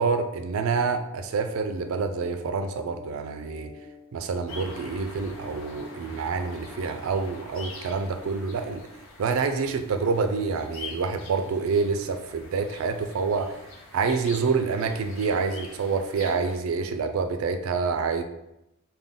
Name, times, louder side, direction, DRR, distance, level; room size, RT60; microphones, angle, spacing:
voice 1, 0.0-3.7 4.1-8.9 9.2-13.6 13.9-18.2, right 4 dB, 75° right, 7 dB, 0.4 m, -27 dB
sound 1, 2.1-6.9, left 5 dB, 55° left, 1.3 m, -49 dB
sound 2, 4.5-16.6, left 3 dB, 70° left, 0.6 m, -45 dB
3.6 x 2.1 x 3.7 m, 0.88 s
head